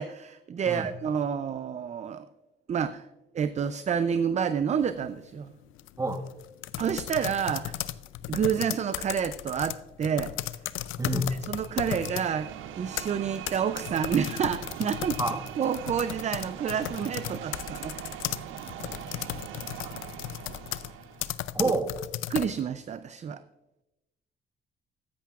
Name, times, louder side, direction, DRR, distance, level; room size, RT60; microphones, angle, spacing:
voice 1, 0.0-2.3 2.7-3.1 3.3-5.5 6.8-7.8 8.3-10.3 11.5-12.5 12.8-15.2 15.6-18.0 22.3-23.4, right 7 dB, 35° right, 12 dB, 0.4 m, -29 dB
sound 1, 4.8-5.1 5.7-12.3 12.7-22.6, left 13 dB, 85° left, 0.5 m, -35 dB
voice 2, 11.0-11.3 15.2-15.4 19.8-19.9 21.5-21.9, right 2 dB, 15° right, 7 dB, 1.1 m, -27 dB
sound 2, 11.6-21.4, right 11 dB, 80° right, 0.6 m, -41 dB
14.0 x 10.0 x 2.4 m, 0.97 s
cardioid pair, 90°, 20 cm